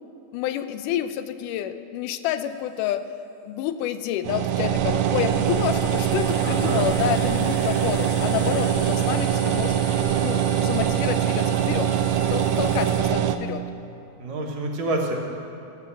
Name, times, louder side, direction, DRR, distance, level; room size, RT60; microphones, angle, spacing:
voice 1, 0.3-3.0 3.5-9.8 10.2-11.9 12.3-13.6, left 11 dB, 90° left, 11 dB, 2.1 m, -28 dB
sound 1, 2.5-2.6 4.6-13.0, left 6 dB, 65° left, 1.9 m, -40 dB
sound 2, 4.2-13.4, right 10 dB, 80° right, 1.6 m, -23 dB
voice 2, 6.4-6.8 14.2-15.2, right 2 dB, 65° right, -1 dB, 2.4 m, -27 dB
14.0 x 7.8 x 7.4 m, 2.6 s
omnidirectional pair, 3.6 m